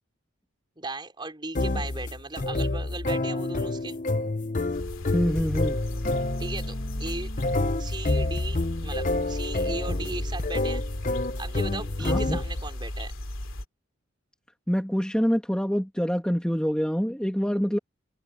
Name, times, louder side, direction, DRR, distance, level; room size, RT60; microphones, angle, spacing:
voice 1, 0.8-4.0 6.4-7.3 7.8-10.8 11.4-13.1, right 2 dB, 20° right, 4.7 m, -37 dB
sound 1, 1.5-12.7, left 2 dB, 35° left, 0.7 m, -29 dB
sound 2, 4.7-13.6, left 1 dB, 70° left, 2.9 m, -34 dB
voice 2, 5.1-5.8 12.0-12.4 14.7-17.8, equal, 5° left, 2.8 m, -26 dB
head